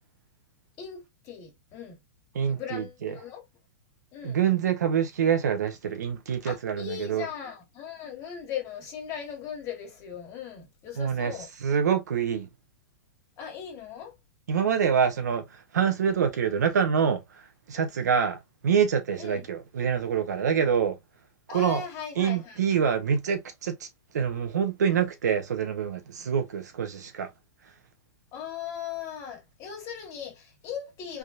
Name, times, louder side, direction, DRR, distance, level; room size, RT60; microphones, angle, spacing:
voice 1, 0.8-2.0 2.4-3.4 4.1-4.4 6.4-11.5 13.4-14.2 19.2-19.4 21.5-22.6 28.3-31.2, left 8 dB, 35° left, 1.5 m, -38 dB
voice 2, 2.3-3.2 4.2-7.3 11.0-11.3 11.6-12.5 14.5-17.2 17.7-18.4 18.6-21.0 21.5-21.8 22.2-23.9 24.1-27.3, right 7 dB, 85° right, 0.9 m, -26 dB
3.6 x 2.3 x 2.6 m
hypercardioid pair, 125°, 9 cm